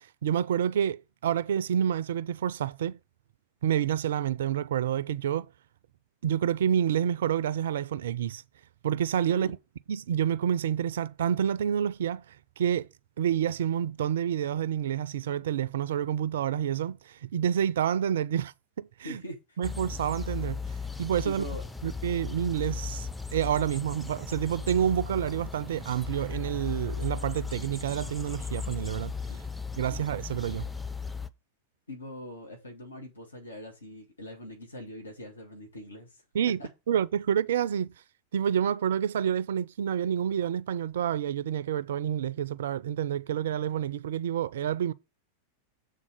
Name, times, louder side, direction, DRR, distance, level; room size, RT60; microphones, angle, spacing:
voice 1, 0.0-3.0 3.6-5.5 6.2-8.4 8.8-9.5 9.9-12.9 13.2-19.2 19.6-20.6 21.0-21.4 21.8-29.1 29.8-30.7 36.3-36.6 36.9-37.9 38.3-44.9, right 9 dB, 60° right, 0.3 m, -28 dB
voice 2, 19.0-19.6 21.2-21.6 29.3-29.4 29.9-30.0 31.9-36.7, left 1 dB, 75° left, 1.3 m, -42 dB
sound 1, 19.6-31.3, left 5 dB, 5° left, 0.5 m, -37 dB
7.4 x 3.7 x 6.4 m
figure-of-eight pair, 90°, 0 cm